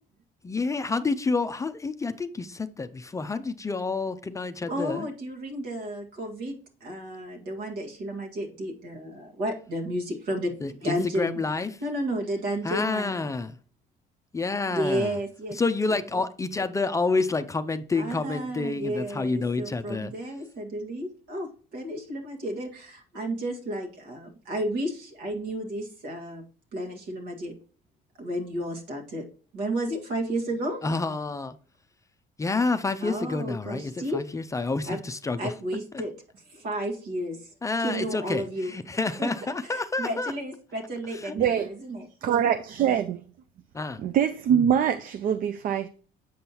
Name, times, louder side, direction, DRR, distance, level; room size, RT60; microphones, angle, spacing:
voice 1, 0.4-5.1 10.6-11.7 12.6-13.6 14.3-15.1 15.5-20.1 30.8-31.6 32.4-35.5 37.6-40.3 41.1-41.3 43.7-44.0, left 3 dB, 20° left, 0.4 m, -29 dB
voice 2, 4.7-11.4 11.8-13.1 14.7-15.6 17.9-26.4 26.7-27.5 28.2-29.3 29.5-30.8 33.0-34.2 34.8-35.0 35.4-37.5 37.8-38.7 39.2-39.3 39.6-42.3 44.0-44.1, right 1 dB, 75° right, 1.8 m, -32 dB
voice 3, 41.4-41.7 42.2-43.3 44.0-45.9, right 9 dB, 55° right, 0.5 m, -24 dB
7.7 x 5.4 x 2.9 m
cardioid pair, 110°, 17 cm